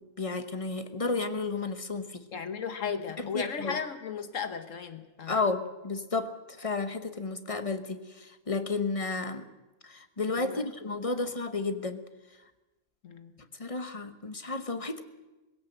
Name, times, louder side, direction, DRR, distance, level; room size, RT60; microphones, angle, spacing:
voice 1, 0.0-2.2 3.2-3.8 5.3-9.5 9.8-12.0 13.5-15.0, left 3 dB, 25° left, 10 dB, 1.1 m, -32 dB
voice 2, 2.3-5.4 10.4-10.7 13.0-13.3, left 6 dB, 70° left, 10 dB, 1.5 m, -35 dB
20.5 x 16.5 x 7.8 m, 1.1 s
omnidirectional pair, 1.4 m